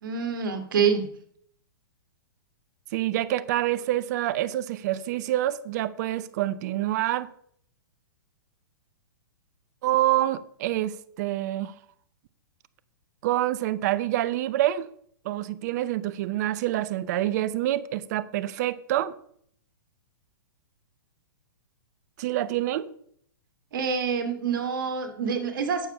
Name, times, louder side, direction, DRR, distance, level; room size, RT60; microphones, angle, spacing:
voice 1, 0.0-1.1 23.7-25.9, right 6 dB, 65° right, 2.0 m, -26 dB
voice 2, 2.9-7.3 9.8-11.7 13.2-14.9 15.2-19.1 22.2-22.9, right 14 dB, 50° right, 0.8 m, -27 dB
9.0 x 7.1 x 5.8 m
hypercardioid pair, 125°, 12 cm